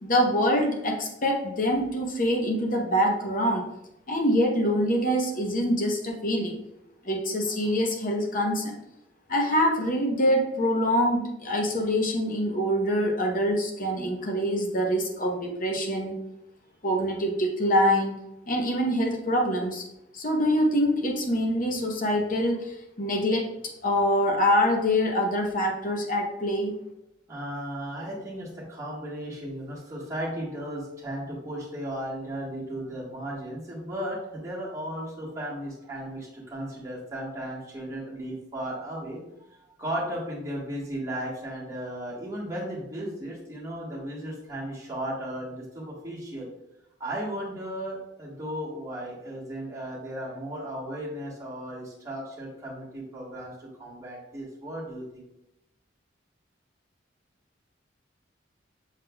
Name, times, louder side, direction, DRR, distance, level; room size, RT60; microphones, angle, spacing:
voice 1, 0.0-3.6 4.1-6.6 7.0-8.8 9.3-16.1 16.8-18.2 18.5-19.8 20.1-23.5 23.8-26.8, equal, 40° left, 1 dB, 0.8 m, -25 dB
voice 2, 27.3-46.5 47.0-55.2, right 1 dB, 15° right, -7 dB, 1.4 m, -35 dB
6.5 x 3.7 x 2.2 m, 0.87 s
head